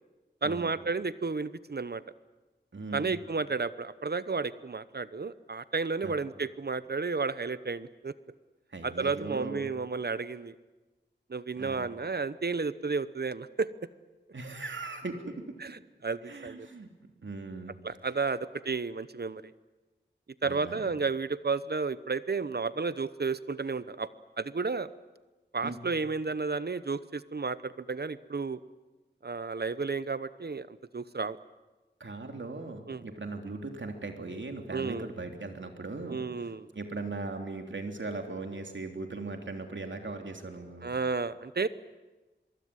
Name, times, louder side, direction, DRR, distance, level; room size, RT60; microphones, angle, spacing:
voice 1, 0.4-2.0 2.9-8.1 8.8-10.5 11.3-13.7 15.6-16.7 17.8-19.5 20.4-24.1 24.4-24.9 25.5-28.6 29.2-31.4 32.9-33.0 34.7-35.1 36.1-36.7 40.8-41.7, right 4 dB, 55° right, 15 dB, 0.9 m, -32 dB
voice 2, 2.7-3.1 6.0-6.3 8.7-9.8 11.6-11.9 14.3-15.6 16.3-16.9 17.2-17.8 20.4-20.9 25.6-25.8 32.0-41.0, right 3 dB, 75° right, 4 dB, 3.4 m, -39 dB
24.0 x 22.5 x 9.8 m, 1.1 s
wide cardioid pair, 60°, 19 cm